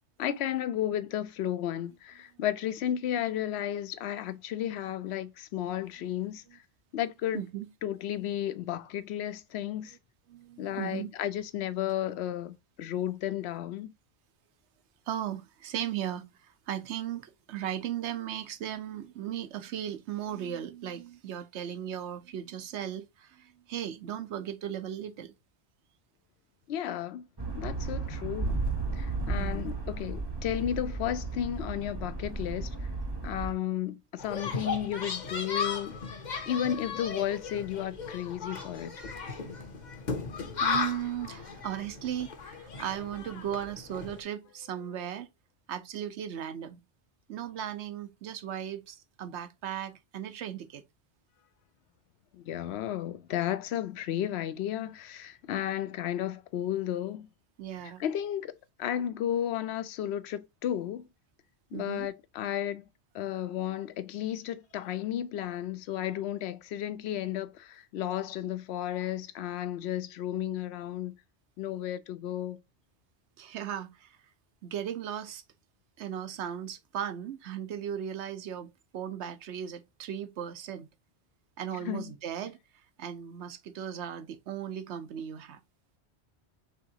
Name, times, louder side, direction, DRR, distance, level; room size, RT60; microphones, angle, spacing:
voice 1, 0.2-6.6 6.9-7.4 7.8-10.0 10.6-13.9 26.7-27.3 27.6-28.6 28.9-32.7 33.2-36.0 36.5-38.9 52.4-57.3 58.0-58.5 58.8-61.1 61.7-62.8 63.1-71.2 71.6-72.6 81.8-82.1, left 11 dB, 75° left, 0.8 m, -33 dB
voice 2, 7.3-7.7 10.3-11.1 15.1-25.3 29.3-29.7 40.6-45.3 45.7-46.8 47.3-50.8 57.6-58.0 61.7-62.1 73.4-74.2 74.6-75.4 76.0-80.9 81.6-82.6 83.0-85.6, right 10 dB, 85° right, 1.0 m, -37 dB
sound 1, 27.4-33.5, right 3 dB, 25° right, 0.7 m, -34 dB
sound 2, 34.2-44.2, left 5 dB, 45° left, 0.9 m, -36 dB
4.9 x 3.5 x 2.7 m
omnidirectional pair, 1.1 m